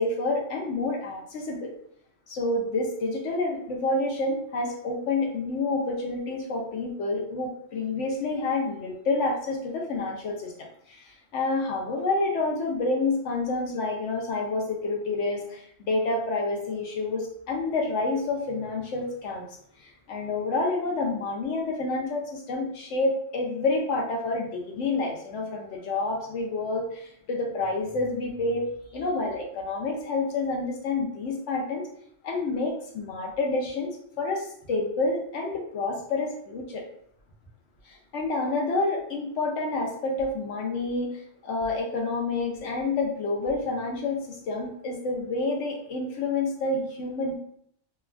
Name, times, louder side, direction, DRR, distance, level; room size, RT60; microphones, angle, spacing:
voice 1, 0.0-1.7 2.3-19.5 19.8-28.6 28.9-31.9 32.2-36.8 37.9-47.4, left 3 dB, 70° left, 0 dB, 0.9 m, -28 dB
3.2 x 2.2 x 2.3 m, 0.68 s
omnidirectional pair, 1.3 m